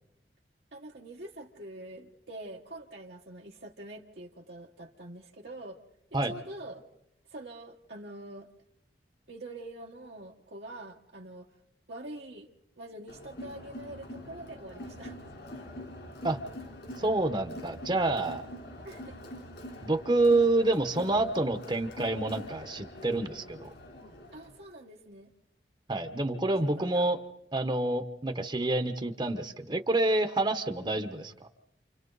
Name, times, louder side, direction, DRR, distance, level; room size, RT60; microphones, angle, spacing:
voice 1, 0.7-5.8 6.2-6.9 7.3-8.5 9.3-11.5 11.9-12.5 12.8-15.2 18.8-19.2 24.3-25.3 26.5-27.1, right 1 dB, 70° right, -1 dB, 1.5 m, -45 dB
Crowd, 13.1-24.6, left 1 dB, 70° left, 3.7 m, -45 dB
voice 2, 17.0-18.4 19.8-23.7 25.9-27.2 27.5-31.5, right 2 dB, 25° right, 8 dB, 1.0 m, -28 dB
29.5 x 28.5 x 4.0 m, 0.85 s
head